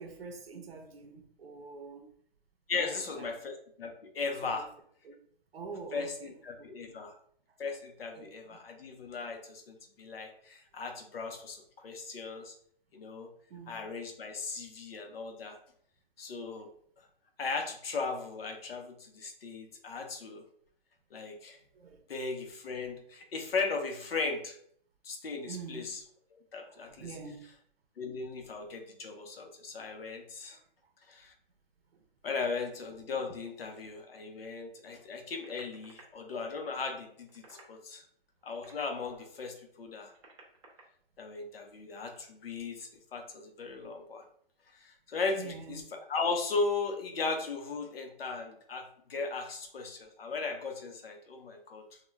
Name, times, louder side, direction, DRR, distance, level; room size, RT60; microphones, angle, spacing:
voice 1, 0.0-2.1 2.7-3.3 4.4-4.6 5.0-5.1 5.5-7.0 8.1-8.6 10.2-10.3 13.5-13.9 21.7-22.0 22.7-22.8 25.4-25.8 26.6-27.4 30.5-30.6 31.9-32.0 45.4-45.8, right 4 dB, 85° right, 0.7 m, -46 dB
voice 2, 2.7-4.7 5.9-7.1 7.6-12.5 12.9-13.3 13.7-15.6 16.2-16.7 17.4-20.4 21.1-21.6 22.1-24.6 25.0-26.0 26.5-27.2 28.0-30.6 31.1-31.3 32.2-38.0 38.4-40.1 41.2-44.2 44.7-45.8 46.1-52.0, left 4 dB, 75° left, 0.7 m, -37 dB
sound 1, 35.4-36.0 37.1-37.7 38.4-39.3 40.0-40.8 42.0-42.2, right 3 dB, 30° right, 0.6 m, -56 dB
2.4 x 2.2 x 3.1 m
hypercardioid pair, 165°, 30 cm